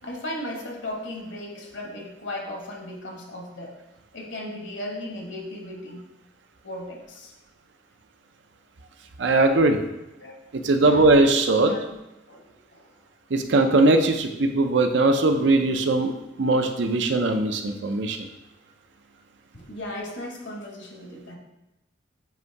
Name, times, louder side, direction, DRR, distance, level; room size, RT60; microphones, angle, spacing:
voice 1, 0.0-3.8 4.1-6.0 6.6-7.3 10.2-10.3 10.8-11.0 11.5-11.8 12.3-13.0 19.5-21.4, left 1 dB, 65° left, 0 dB, 1.3 m, -36 dB
voice 2, 9.2-9.8 10.5-11.7 13.3-18.2, right 2 dB, 65° right, 6 dB, 0.6 m, -20 dB
7.9 x 2.7 x 4.6 m, 0.95 s
head